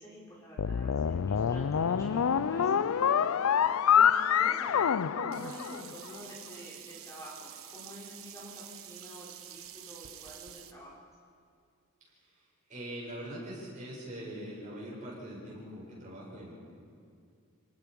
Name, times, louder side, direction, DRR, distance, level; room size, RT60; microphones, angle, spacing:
voice 1, 0.0-3.5 3.9-11.0, equal, 15° left, -6 dB, 5.4 m, -48 dB
sound 1, 0.6-6.1, left 8 dB, 85° left, 0.4 m, -26 dB
Sink (filling or washing), 5.3-10.7, right 10 dB, 80° right, 1.1 m, -48 dB
voice 2, 12.2-16.5, right 1 dB, 35° right, -5 dB, 7.7 m, -43 dB
29.5 x 18.5 x 5.4 m, 2.3 s
head